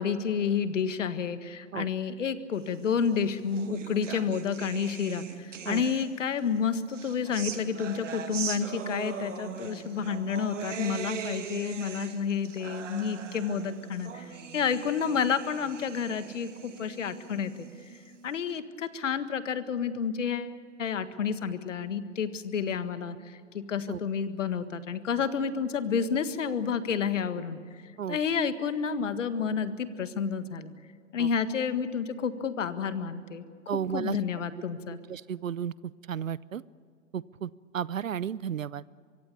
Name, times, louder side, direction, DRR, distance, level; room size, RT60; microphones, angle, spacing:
voice 1, 0.0-17.7 18.2-20.5 20.8-27.6 28.1-30.7 31.1-33.4 33.9-35.0, left 6 dB, 70° left, 11 dB, 1.8 m, -30 dB
sound 1, 3.0-6.4 6.9-18.4, right 7 dB, 70° right, 2.5 m, -40 dB
voice 2, 33.7-34.2 34.9-35.7 36.1-36.6 37.1-38.8, right 8 dB, 85° right, 21 dB, 0.6 m, -33 dB
24.0 x 23.5 x 7.0 m, 2.2 s
hypercardioid pair, 115°, 38 cm